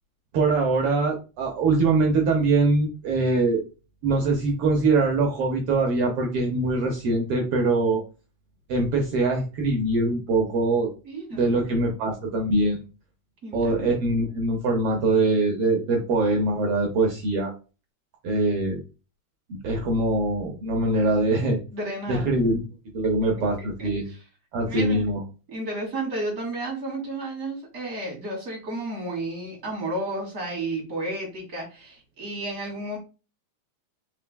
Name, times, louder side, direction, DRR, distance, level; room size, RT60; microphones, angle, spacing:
voice 1, 0.3-3.6 4.0-8.0 8.7-10.9 11.3-12.8 13.5-17.5 18.2-18.8 19.6-21.6 22.1-22.6 22.9-24.0 24.5-25.2, right 2 dB, 70° right, 1 dB, 1.4 m, -23 dB
voice 2, 11.0-11.6 13.4-13.9 21.7-22.2 23.6-24.3 24.7-25.1 25.5-33.0, right 2 dB, 35° right, 0 dB, 1.9 m, -32 dB
4.5 x 4.3 x 2.2 m, 0.32 s
omnidirectional pair, 3.4 m